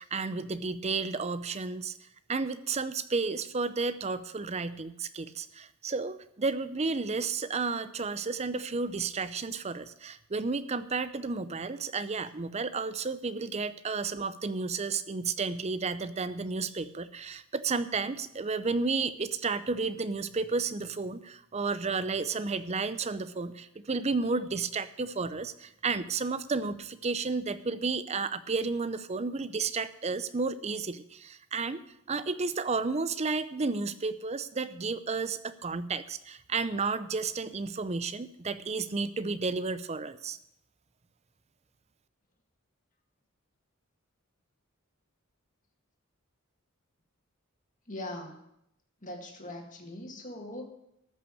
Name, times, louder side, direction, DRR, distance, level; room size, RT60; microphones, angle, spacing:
voice 1, 0.0-1.9 2.3-31.8 32.1-40.4, right 4 dB, 30° right, 13 dB, 0.6 m, -32 dB
voice 2, 47.9-48.4 49.0-50.7, left 1 dB, 35° left, 2 dB, 2.1 m, -41 dB
13.5 x 6.0 x 8.5 m, 0.79 s
head